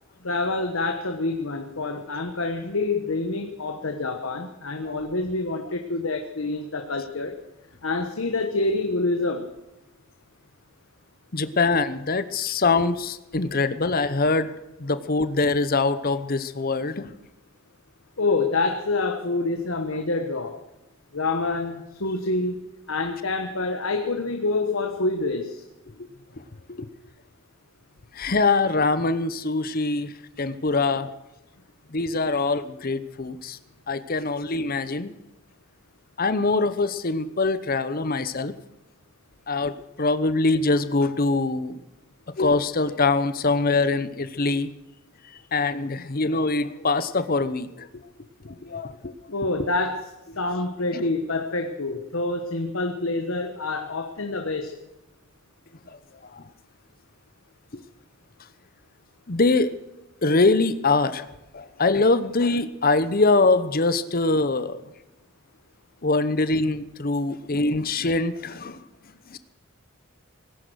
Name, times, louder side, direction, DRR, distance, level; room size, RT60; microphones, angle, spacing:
voice 1, 0.2-7.4 7.8-9.5 18.2-20.6 21.1-25.6 49.3-50.0 50.4-54.7, left 3 dB, 70° left, 5 dB, 1.3 m, -27 dB
voice 2, 11.3-14.5 14.8-17.1 26.7-26.9 28.1-31.1 31.9-33.6 33.9-35.1 36.2-38.5 39.5-41.8 42.4-44.7 45.5-48.0 48.4-49.3 50.9-51.1 55.9-56.0 56.2-56.4 57.7-57.8 59.3-59.7 60.2-64.8 66.0-68.8 69.3-69.4, left 3 dB, 40° left, 13 dB, 0.9 m, -23 dB
19.0 x 10.5 x 6.3 m, 0.97 s
head